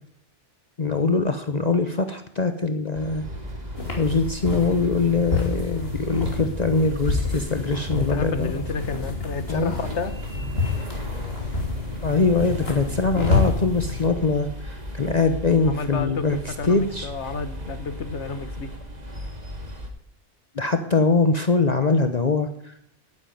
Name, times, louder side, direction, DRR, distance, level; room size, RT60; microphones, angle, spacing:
voice 1, 0.8-3.2 4.0-8.5 9.5-9.7 12.0-16.4 16.7-17.1 20.6-22.5, left 3 dB, 40° left, 8 dB, 1.0 m, -22 dB
sound 1, 2.9-19.9, equal, 35° right, 2.0 m, -37 dB
sound 2, 3.8-14.1, left 3 dB, 55° left, 3.1 m, -28 dB
voice 2, 8.1-10.2 15.7-18.7, left 4 dB, 75° left, 11 dB, 1.5 m, -31 dB
11.0 x 9.5 x 9.3 m, 0.75 s
omnidirectional pair, 1.2 m